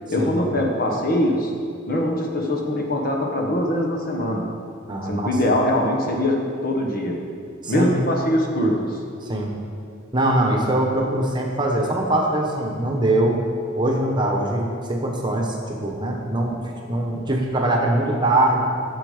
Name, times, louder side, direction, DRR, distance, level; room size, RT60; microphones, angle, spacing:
voice 1, 0.1-1.5 1.9-4.5 5.1-7.3 7.7-9.0, left 1 dB, 50° left, 1 dB, 1.3 m, -22 dB
voice 2, 4.9-5.3 7.6-8.0 9.2-9.5 10.1-13.4 13.8-16.6 16.9-18.6, right 1 dB, 25° right, 0 dB, 1.2 m, -22 dB
11.5 x 7.1 x 5.0 m, 2.3 s
head